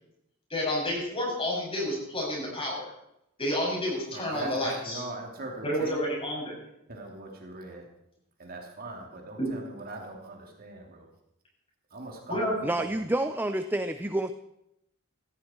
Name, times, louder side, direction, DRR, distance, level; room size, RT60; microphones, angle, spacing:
voice 1, 0.5-2.8 3.4-5.0 5.6-6.5 9.4-9.5 12.3-12.7, left 1 dB, 25° left, -2 dB, 6.9 m, -30 dB
voice 2, 4.1-6.0 6.9-7.9 8.4-11.1 11.9-13.0, right 2 dB, 45° right, 1 dB, 2.9 m, -40 dB
voice 3, 12.6-14.3, right 1 dB, 10° right, 9 dB, 0.5 m, -28 dB
17.0 x 15.0 x 4.5 m, 0.80 s
head